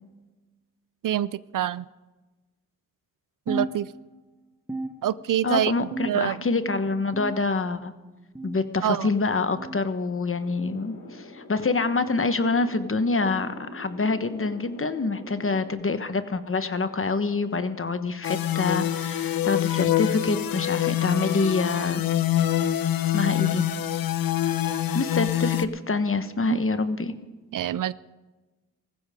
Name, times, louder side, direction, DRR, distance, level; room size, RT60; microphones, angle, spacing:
voice 1, 1.0-1.8 3.5-3.9 5.0-6.4 8.8-9.1 26.5-26.6 27.5-27.9, right 11 dB, 70° right, 19 dB, 0.5 m, -26 dB
sound 1, 3.5-4.3 4.7-5.5 5.9-6.5 7.1-7.7 8.3-8.7 9.6-9.8 10.8-11.0 12.0-12.2 13.2-13.4 14.4-14.6 15.7-15.8 16.9-17.0 18.1-18.2, right 2 dB, 10° right, 1.3 m, -36 dB
voice 2, 5.4-7.9 8.4-22.0 23.1-23.7 24.9-27.1, left 3 dB, 40° left, 10 dB, 1.2 m, -26 dB
sound 2, 10.4-15.7, left 2 dB, 60° left, 5.0 m, -44 dB
sound 3, 18.2-25.6, left 12 dB, 80° left, 0.7 m, -25 dB
18.5 x 15.0 x 3.7 m, 1.2 s
cardioid pair, 45°, 34 cm